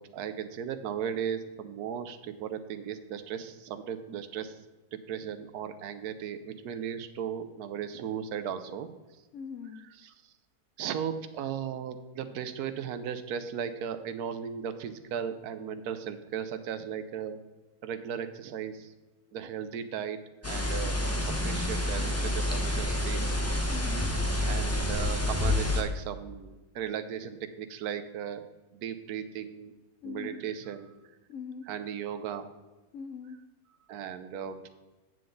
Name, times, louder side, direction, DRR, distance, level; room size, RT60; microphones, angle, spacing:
voice 1, 0.0-4.6 4.9-9.2 9.7-10.3 10.8-17.4 17.8-18.9 19.3-23.2 24.4-28.4 28.7-29.7 30.0-30.9 31.7-32.5 33.9-34.7, right 8 dB, 75° right, 10 dB, 1.2 m, -36 dB
voice 2, 9.3-9.8 23.7-24.1 30.0-30.4 31.3-31.7 32.9-33.4, left 6 dB, 65° left, 6 dB, 0.8 m, -41 dB
sound 1, 20.4-25.8, left 1 dB, 15° left, 0.6 m, -28 dB
9.0 x 7.7 x 3.9 m, 1.1 s
omnidirectional pair, 1.7 m